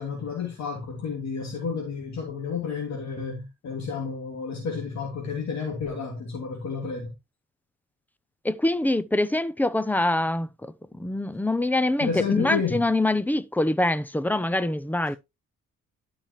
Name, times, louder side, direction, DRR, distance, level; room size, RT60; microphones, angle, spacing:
voice 1, 0.0-7.1 12.0-12.8, left 5 dB, 65° left, 2.8 m, -31 dB
voice 2, 8.4-15.2, left 2 dB, 5° left, 0.7 m, -24 dB
12.0 x 5.9 x 3.1 m
cardioid pair, 90°, 30 cm